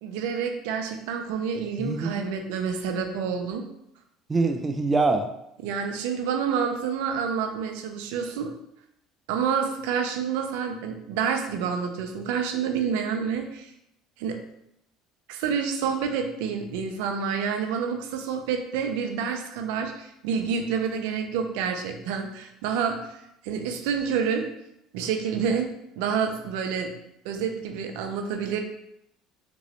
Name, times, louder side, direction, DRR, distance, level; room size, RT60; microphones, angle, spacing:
voice 1, 0.0-3.7 5.6-8.5 9.3-13.7 14.2-14.4 15.3-23.1 23.4-24.4 24.9-26.9 27.2-28.6, right 6 dB, 80° right, 5 dB, 0.5 m, -28 dB
voice 2, 1.8-2.2 4.3-5.3, right 3 dB, 20° right, 6 dB, 0.3 m, -24 dB
3.7 x 3.0 x 3.0 m, 0.80 s
supercardioid pair, 90°, 0 cm